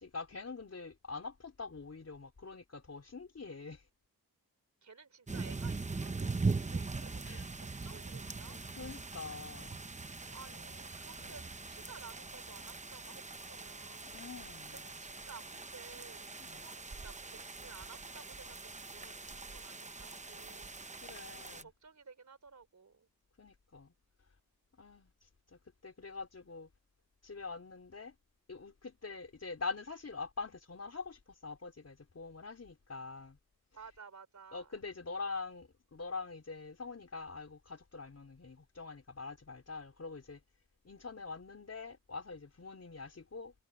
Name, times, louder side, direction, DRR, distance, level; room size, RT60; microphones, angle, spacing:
voice 1, 0.0-3.9 7.2-7.5 8.5-9.8 10.5-10.6 11.2-11.4 14.0-14.9 16.4-16.6 21.0-21.7 23.4-23.9 24.8-26.7 27.2-28.1 28.5-33.4 34.5-40.4 40.8-43.5, left 4 dB, 40° left, 4.5 m, -45 dB
voice 2, 4.8-8.6 10.3-14.1 14.7-20.7 21.4-23.1 33.7-34.8, right 5 dB, 45° right, 3.8 m, -55 dB
sound 1, 5.3-21.6, right 3 dB, 20° right, 0.8 m, -41 dB
wide cardioid pair, 120°, 39 cm